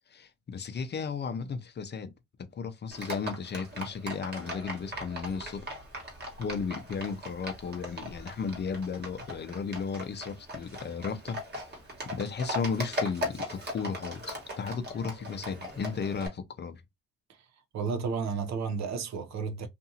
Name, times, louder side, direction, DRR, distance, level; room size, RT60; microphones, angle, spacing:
voice 1, 0.1-2.1 2.6-5.6 6.4-11.4 12.1-16.8, left 5 dB, 35° left, 0.5 m, -34 dB
Livestock farm animals working animals, 2.9-16.3, equal, 35° right, 1.3 m, -39 dB
voice 2, 17.7-19.7, right 5 dB, 65° right, 0.6 m, -32 dB
2.6 x 2.4 x 2.7 m
cardioid pair, 90°, 30 cm